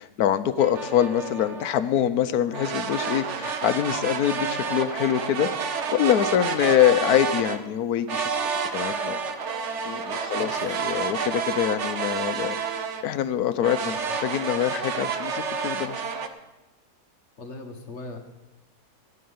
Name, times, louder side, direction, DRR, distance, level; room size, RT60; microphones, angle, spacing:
voice 1, 0.0-5.5 5.9-8.2 8.7-9.2 9.8-12.6 13.0-15.9, left 10 dB, 70° left, 13 dB, 1.2 m, -24 dB
sound 1, 0.6-1.8 2.5-7.6 8.1-13.1 13.6-16.3, right 6 dB, 50° right, 1.1 m, -29 dB
voice 2, 17.4-18.2, left 2 dB, 45° left, 4 dB, 1.6 m, -38 dB
16.5 x 5.6 x 9.5 m, 1.0 s
omnidirectional pair, 1.7 m